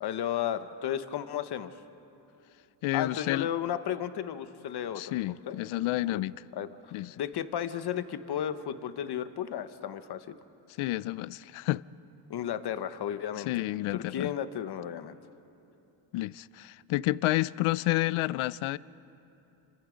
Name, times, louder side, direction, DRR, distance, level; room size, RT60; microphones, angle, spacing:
voice 1, 0.0-1.7 2.9-5.2 5.5-5.6 6.1-6.2 6.5-10.4 12.3-13.5 13.9-15.2, left 10 dB, 50° left, 1.1 m, -34 dB
voice 2, 2.8-3.5 5.0-6.4 6.9-7.2 10.8-11.8 13.5-14.3 16.1-18.8, left 17 dB, 80° left, 0.5 m, -30 dB
29.5 x 25.0 x 5.1 m
cardioid pair, 130°, 49 cm